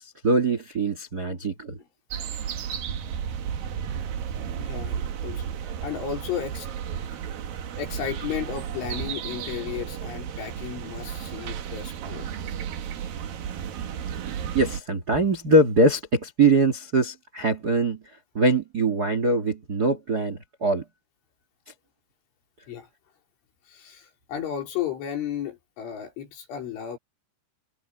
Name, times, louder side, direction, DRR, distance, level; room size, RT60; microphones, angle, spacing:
voice 1, 0.0-1.8 14.5-18.0 18.3-20.8, right 2 dB, 85° right, 0.8 m, -22 dB
sound 1, 2.1-14.8, right 8 dB, 60° right, 2.9 m, -33 dB
voice 2, 4.6-5.5 5.8-6.7 7.8-12.3 22.7-22.9 23.7-27.0, left 9 dB, 85° left, 6.8 m, -34 dB
omnidirectional pair, 5.4 m